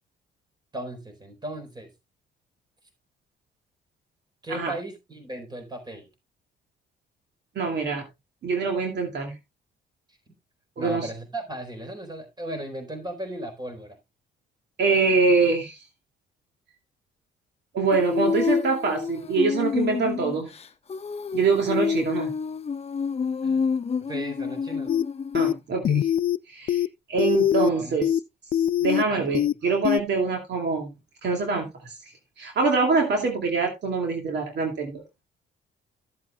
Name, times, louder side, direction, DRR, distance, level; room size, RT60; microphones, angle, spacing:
voice 1, 0.7-1.9 4.4-6.1 10.8-14.0 23.4-23.6 24.0-24.9 27.6-28.1 29.1-29.5, right 1 dB, 20° right, 4.3 m, -36 dB
voice 2, 7.6-8.0 8.4-9.3 10.8-11.1 14.8-15.8 17.7-20.5 21.3-22.3 25.3-26.1 26.5-26.8 27.1-28.1 28.8-30.9 31.2-31.9 32.4-35.0, right 4 dB, 60° right, 2.5 m, -24 dB
Female singing, 17.9-25.6, left 6 dB, 30° left, 0.9 m, -28 dB
sound 1, 24.9-25.0 25.3-25.5 25.8-26.4 26.7-26.9 27.2-27.7 28.0-28.2 28.5-29.0 29.3-29.5 29.8-30.0, left 10 dB, 50° left, 0.4 m, -22 dB
14.5 x 7.9 x 2.3 m
cardioid pair, 90°, 20 cm